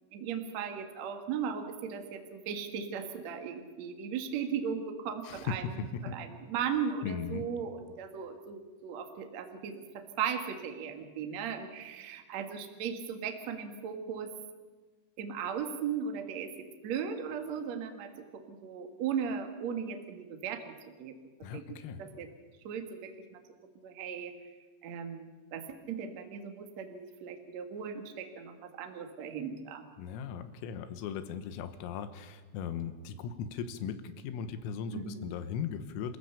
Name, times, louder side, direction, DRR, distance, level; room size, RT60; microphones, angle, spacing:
voice 1, 0.1-5.7 6.0-14.3 15.2-20.7 21.0-22.3 22.6-23.4 23.8-24.3 24.8-29.8 34.9-35.3, right 7 dB, 70° right, 5 dB, 1.6 m, -37 dB
voice 2, 5.3-6.2 7.0-7.5 21.4-22.0 30.0-36.2, left 7 dB, 90° left, 11 dB, 3.8 m, -38 dB
27.5 x 15.5 x 6.9 m, 1.4 s
omnidirectional pair, 5.9 m